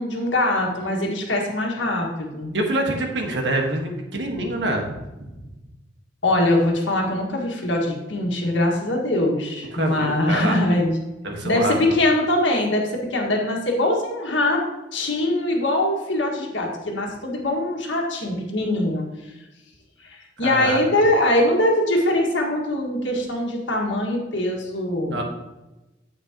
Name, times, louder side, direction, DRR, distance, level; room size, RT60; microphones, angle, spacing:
voice 1, 0.0-2.5 6.2-11.0 11.4-14.7 14.9-19.1 20.0-25.2, left 1 dB, 80° left, 0 dB, 1.7 m, -22 dB
voice 2, 2.5-5.3 9.7-10.6 11.2-11.8 20.4-20.8 25.1-25.2, right 1 dB, 65° right, 2 dB, 1.4 m, -26 dB
9.5 x 7.8 x 2.9 m, 1.0 s
head